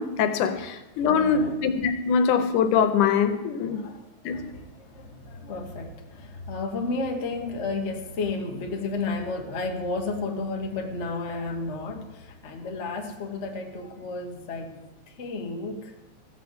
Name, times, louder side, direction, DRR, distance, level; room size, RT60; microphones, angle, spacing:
voice 1, 0.0-3.8 4.3-4.5, left 6 dB, 85° left, 9 dB, 2.4 m, -23 dB
voice 2, 1.0-1.6 3.7-14.8 15.1-15.9, left 3 dB, 60° left, 3 dB, 0.7 m, -32 dB
14.5 x 5.8 x 7.9 m, 1.1 s
omnidirectional pair, 3.5 m